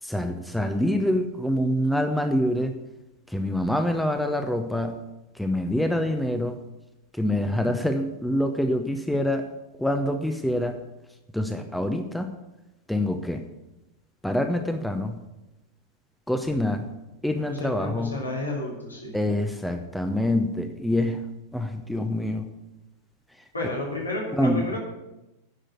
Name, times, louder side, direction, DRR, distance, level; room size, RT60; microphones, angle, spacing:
voice 1, 0.0-2.8 3.3-5.0 5.3-6.6 7.1-9.5 9.8-10.8 11.3-12.3 12.9-13.4 14.2-15.2 16.3-16.9 17.2-18.2 19.1-21.2 21.5-22.4 24.3-24.7, left 1 dB, ahead, 6 dB, 0.7 m, -26 dB
voice 2, 17.5-19.1 23.5-24.8, left 2 dB, 80° left, -2 dB, 3.0 m, -31 dB
10.0 x 6.5 x 7.9 m, 0.98 s
figure-of-eight pair, 90°, 0 cm